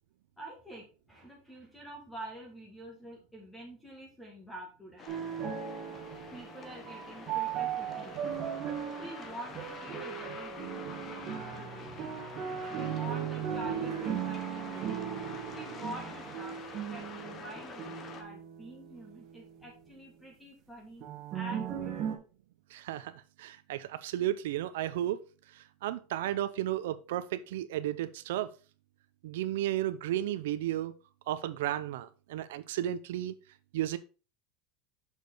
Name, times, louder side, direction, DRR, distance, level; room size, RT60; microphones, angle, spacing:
voice 1, 0.4-5.1 6.3-8.2 9.0-12.1 12.7-14.9 15.5-21.1 21.3-22.1, right 1 dB, 5° left, 1.6 m, -47 dB
sound 1, 5.0-18.2, left 4 dB, 25° left, 0.9 m, -46 dB
sound 2, 5.1-19.7 21.0-22.2, right 9 dB, 35° right, 1.4 m, -37 dB
voice 2, 22.7-25.2 25.5-28.5 29.2-30.9 31.3-33.3 33.7-34.0, right 13 dB, 85° right, 0.6 m, -33 dB
6.5 x 5.2 x 3.9 m
supercardioid pair, 175°, 0 cm